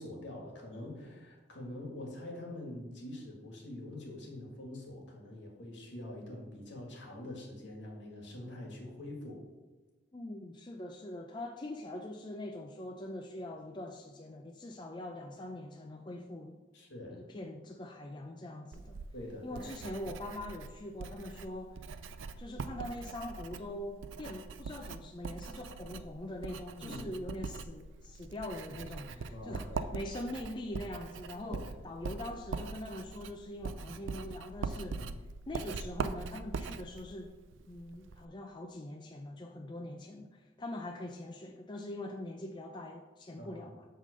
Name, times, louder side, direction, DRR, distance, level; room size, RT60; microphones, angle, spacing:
voice 1, 0.0-9.4 16.7-17.2 19.1-19.6 26.8-27.1 29.1-29.9 31.4-31.7 35.0-35.1 43.4-43.7, left 1 dB, 65° left, 0 dB, 2.0 m, -45 dB
voice 2, 10.1-16.6 17.1-19.0 19.4-21.9 22.4-35.1 35.5-37.3 37.7-43.9, left 1 dB, 25° left, 3 dB, 0.4 m, -43 dB
Writing, 18.7-38.2, right 4 dB, 85° right, 0.4 m, -42 dB
8.1 x 3.8 x 6.6 m, 1.3 s
head